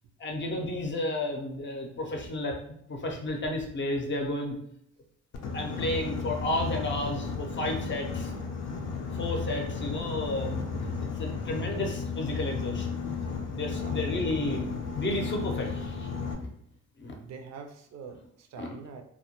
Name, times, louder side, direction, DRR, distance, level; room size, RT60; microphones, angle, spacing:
voice 1, 0.2-2.6 2.9-4.6 5.5-8.3 9.1-10.6 11.2-13.0 13.5-16.1 16.4-16.5 17.0-17.1 18.6-18.7, left 1 dB, 40° left, 2 dB, 0.6 m, -32 dB
Boat Water vehicle, 5.3-16.3, left 5 dB, 85° left, 0.5 m, -34 dB
voice 2, 13.7-14.1 17.2-19.0, right 5 dB, 60° right, 5 dB, 0.4 m, -45 dB
2.2 x 2.1 x 2.8 m, 0.69 s
cardioid pair, 90°, 30 cm